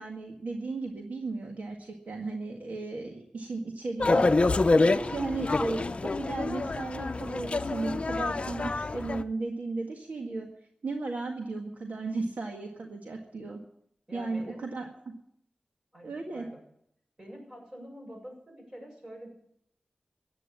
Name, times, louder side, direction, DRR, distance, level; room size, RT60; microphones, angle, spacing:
voice 1, 0.0-4.3 4.7-10.5 10.8-13.6 14.1-15.1 16.0-16.5, right 3 dB, 75° right, 1 dB, 1.9 m, -35 dB
sound 1, 4.0-9.2, left 3 dB, 45° left, 0.7 m, -27 dB
voice 2, 14.1-14.7 15.9-16.6 17.2-19.3, equal, 25° right, 0 dB, 7.7 m, -46 dB
15.0 x 9.8 x 8.6 m, 0.71 s
wide cardioid pair, 90°, 3 cm